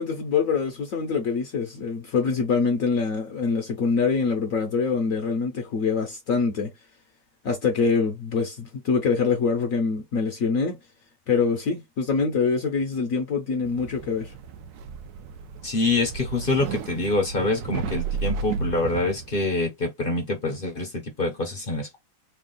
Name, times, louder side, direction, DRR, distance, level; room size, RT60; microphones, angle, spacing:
voice 1, 0.0-6.7 7.4-10.8 11.3-14.3, left 5 dB, 60° left, 1.0 m, -24 dB
sound 1, 13.6-19.4, right 5 dB, 70° right, 1.0 m, -33 dB
voice 2, 15.6-22.0, left 2 dB, 40° left, 0.8 m, -26 dB
3.4 x 2.3 x 3.7 m
omnidirectional pair, 1.9 m